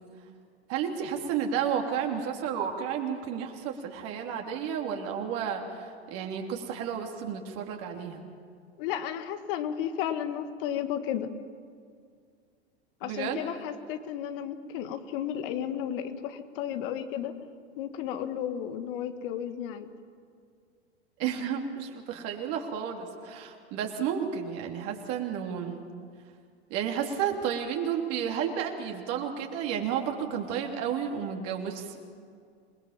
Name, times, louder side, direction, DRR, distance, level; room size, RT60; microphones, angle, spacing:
voice 1, 0.7-8.2 13.0-13.4 21.2-25.8 26.7-32.0, right 8 dB, 45° right, 2 dB, 3.2 m, -32 dB
voice 2, 8.8-11.3 13.0-17.3 17.8-19.9, left 9 dB, 55° left, 9 dB, 1.8 m, -33 dB
27.5 x 20.0 x 7.4 m, 2.2 s
hypercardioid pair, 95°, 33 cm